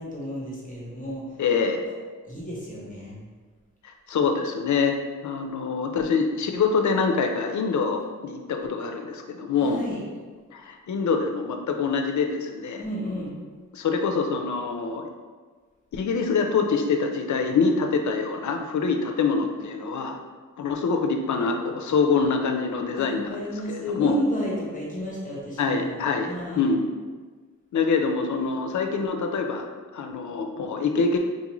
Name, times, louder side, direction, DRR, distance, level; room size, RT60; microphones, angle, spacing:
voice 1, 0.0-1.2 1.8-1.9 2.2-3.2 9.5-10.0 12.8-13.3 23.0-26.7, equal, 25° left, -5 dB, 0.9 m, -32 dB
voice 2, 1.4-1.8 4.1-5.0 5.2-9.8 10.5-12.8 13.7-15.1 15.9-20.2 20.6-23.3 23.7-24.2 25.6-26.8 27.7-29.7 29.9-31.2, left 5 dB, 70° left, 5 dB, 0.4 m, -25 dB
3.9 x 2.5 x 3.0 m, 1.5 s
wide cardioid pair, 125°, 31 cm